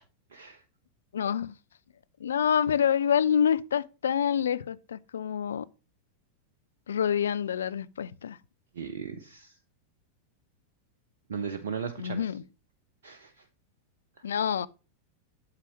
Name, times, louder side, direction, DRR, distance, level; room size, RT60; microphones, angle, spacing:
voice 1, 0.3-0.6 8.7-9.6 11.3-12.3 13.0-13.5 14.2-14.3, right 6 dB, 65° right, 0.6 m, -37 dB
voice 2, 1.1-1.6 2.2-5.7 6.9-8.4 12.0-12.4 14.2-14.7, left 8 dB, 65° left, 0.4 m, -27 dB
8.5 x 7.4 x 3.0 m
figure-of-eight pair, 90°, 0 cm